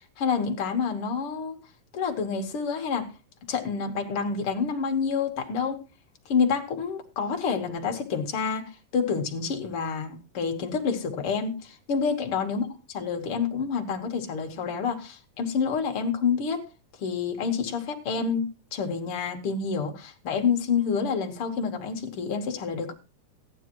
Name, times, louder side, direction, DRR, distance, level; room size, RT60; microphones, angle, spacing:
voice 1, 0.0-1.5 1.9-3.1 3.5-5.8 6.3-16.6 17.0-22.9, left 5 dB, 55° left, 4 dB, 1.7 m, -28 dB
14.5 x 10.5 x 3.0 m, 0.30 s
omnidirectional pair, 4.0 m